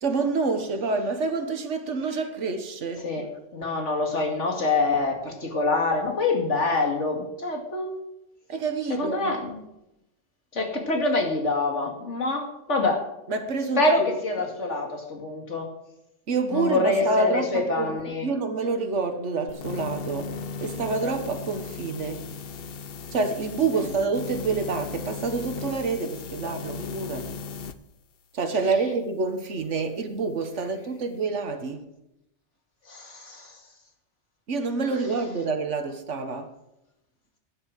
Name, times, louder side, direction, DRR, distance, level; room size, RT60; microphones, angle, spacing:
voice 1, 0.0-3.1 8.5-9.4 13.3-14.2 16.3-18.0 18.2-20.3 20.6-22.3 23.1-27.4 28.3-31.9 34.5-36.5, right 4 dB, 75° right, 1.7 m, -27 dB
voice 2, 3.0-7.9 8.9-9.6 10.5-13.0 13.8-15.7 16.5-18.3 23.7-23.9 32.9-33.6, left 2 dB, 75° left, 2.6 m, -26 dB
sound 1, 19.5-27.8, left 5 dB, 55° left, 0.9 m, -36 dB
11.5 x 9.9 x 6.6 m
omnidirectional pair, 1.2 m